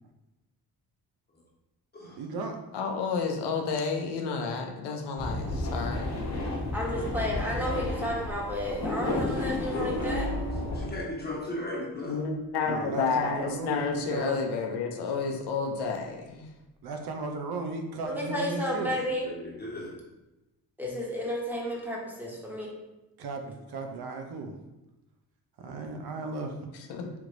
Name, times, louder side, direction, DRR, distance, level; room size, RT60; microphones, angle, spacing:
voice 1, 2.2-2.6 12.7-14.4 16.8-18.9 23.2-24.5 25.6-26.6, right 3 dB, 65° right, 4 dB, 0.7 m, -35 dB
voice 2, 2.7-6.2 12.1-16.5 26.9-27.1, left 5 dB, 85° left, 3 dB, 0.7 m, -30 dB
sound 1, 5.2-10.9, left 2 dB, 40° left, 1.1 m, -32 dB
voice 3, 6.7-10.3 18.0-19.3 20.8-22.7, equal, 5° right, -4 dB, 1.3 m, -32 dB
voice 4, 9.0-10.0 10.7-12.2 19.2-19.9, left 1 dB, 25° left, -3 dB, 1.4 m, -36 dB
sound 2, 10.0-14.1 15.8-16.2, right 2 dB, 50° right, 1.5 m, -42 dB
3.5 x 3.1 x 3.8 m, 0.99 s
cardioid pair, 75°, 40 cm